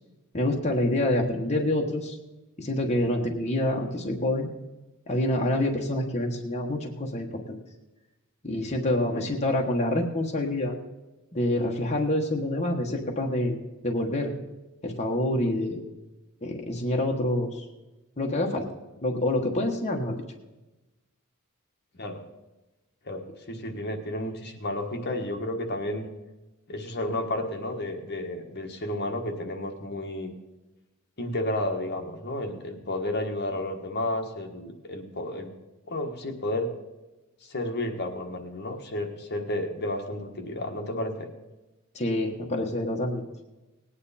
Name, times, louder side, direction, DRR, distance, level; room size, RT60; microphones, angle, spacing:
voice 1, 0.3-2.2 2.6-4.5 5.1-7.6 8.4-10.7 11.3-13.5 13.8-14.3 14.8-15.8 16.4-17.6 18.2-18.7 19.0-20.1 41.9-43.2, left 1 dB, 30° left, 0 dB, 1.3 m, -27 dB
voice 2, 9.0-9.3 22.0-22.2 23.0-26.1 26.7-30.3 31.2-35.5 35.9-36.7 37.4-41.3, left 1 dB, 50° left, 4 dB, 1.4 m, -32 dB
18.5 x 9.6 x 4.2 m, 1.1 s
head